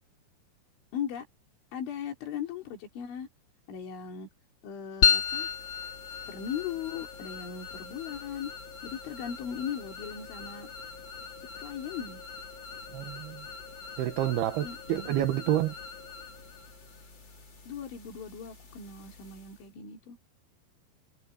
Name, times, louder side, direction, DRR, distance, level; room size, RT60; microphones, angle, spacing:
voice 1, 0.9-1.3 1.7-3.3 3.7-4.3 4.6-5.5 6.3-8.5 8.8-10.7 11.6-12.2 14.6-15.2 17.7-20.2, left 8 dB, 85° left, 5.7 m, -38 dB
sound 1, 5.0-19.7, left 6 dB, 25° left, 3.5 m, -35 dB
voice 2, 12.9-13.5 14.0-15.7, right 12 dB, 70° right, 3.0 m, -29 dB
omnidirectional pair, 5.3 m